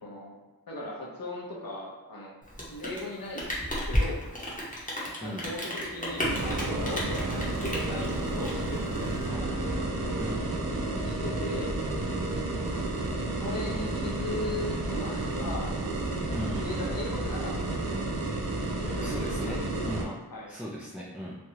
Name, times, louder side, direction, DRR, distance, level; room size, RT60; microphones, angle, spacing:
voice 1, 0.0-0.4 0.7-3.5 3.9-4.2 5.2-9.5 11.0-11.7 13.4-15.9 16.6-18.1 18.8-20.5, left 1 dB, 65° left, -3 dB, 0.8 m, -38 dB
Rain, 2.4-9.2, equal, 20° left, 0.9 m, -33 dB
sound 1, 5.7-16.5, right 1 dB, 35° right, 1.0 m, -42 dB
sound 2, 6.2-20.0, right 2 dB, 75° right, 0.6 m, -31 dB
voice 2, 10.2-10.5 16.3-16.7 19.0-20.1 20.5-21.4, equal, 5° right, -6 dB, 0.4 m, -37 dB
3.2 x 2.3 x 2.7 m, 1.2 s
wide cardioid pair, 50°, 37 cm